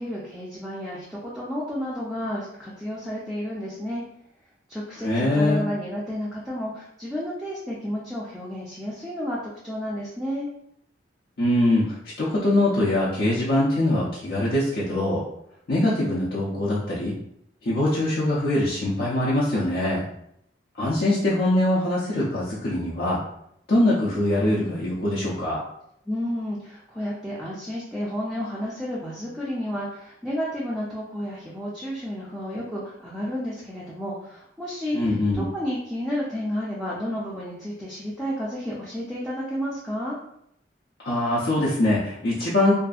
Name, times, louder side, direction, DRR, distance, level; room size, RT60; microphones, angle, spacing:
voice 1, 0.0-4.0 4.7-10.5 26.1-40.2, equal, ahead, -7 dB, 0.4 m, -31 dB
voice 2, 5.0-5.6 11.4-15.2 15.7-17.1 17.6-20.1 20.8-23.2 23.7-25.6 34.9-35.5 41.0-42.7, left 1 dB, 55° left, -8 dB, 0.5 m, -23 dB
2.6 x 2.4 x 2.3 m, 0.74 s
head